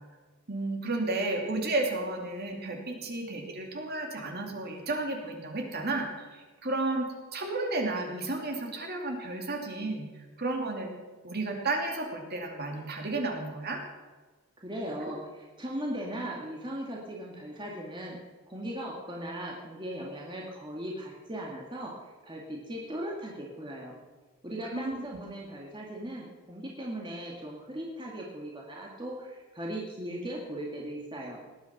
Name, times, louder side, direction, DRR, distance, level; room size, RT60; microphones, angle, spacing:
voice 1, 0.5-10.1 10.4-10.9 11.2-13.8 24.7-25.0, right 2 dB, 45° right, 2 dB, 2.6 m, -32 dB
voice 2, 14.6-18.2 18.5-21.9 22.2-24.0 24.4-31.4, right 1 dB, 20° right, -2 dB, 2.0 m, -38 dB
19.0 x 10.0 x 5.9 m, 1.4 s
head